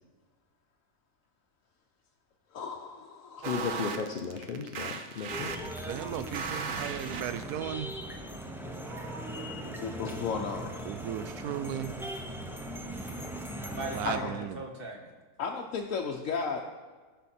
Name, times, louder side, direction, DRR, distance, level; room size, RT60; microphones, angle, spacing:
voice 1, 2.5-3.7 9.8-10.8 13.6-13.7 14.0-14.3 15.4-16.6, left 5 dB, 65° left, 0 dB, 1.1 m, -34 dB
voice 2, 3.4-5.5, left 5 dB, 50° left, 2 dB, 0.7 m, -35 dB
sound 1, 3.4-7.6, right 5 dB, 65° right, 1.1 m, -37 dB
sound 2, 5.3-14.2, equal, 5° right, 0.5 m, -39 dB
voice 3, 5.9-8.0 9.6-9.7 10.4-10.5 10.9-12.0 13.9-14.6, right 10 dB, 90° right, 12 dB, 1.1 m, -36 dB
voice 4, 8.6-9.6 13.7-15.1, right 3 dB, 40° right, 2 dB, 1.4 m, -40 dB
15.5 x 5.7 x 4.3 m, 1.4 s
omnidirectional pair, 1.6 m